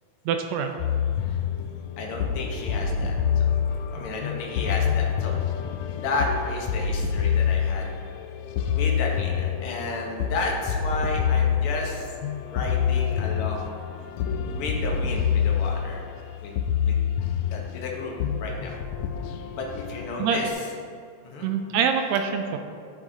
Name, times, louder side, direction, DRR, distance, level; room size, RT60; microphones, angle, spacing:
voice 1, 0.3-0.7 20.2-20.4 21.4-22.6, right 7 dB, 80° right, 5 dB, 1.7 m, -24 dB
sound 1, 0.8-20.5, left 7 dB, 85° left, 1.5 m, -27 dB
voice 2, 2.0-3.5 3.9-5.3 5.9-7.9 8.7-12.1 12.4-13.7 14.5-16.0 16.4-17.0 17.5-18.1 18.4-18.8 19.5-20.7 21.2-21.5, left 3 dB, 65° left, 0 dB, 1.5 m, -32 dB
11.0 x 4.4 x 3.8 m, 2.3 s
omnidirectional pair, 3.5 m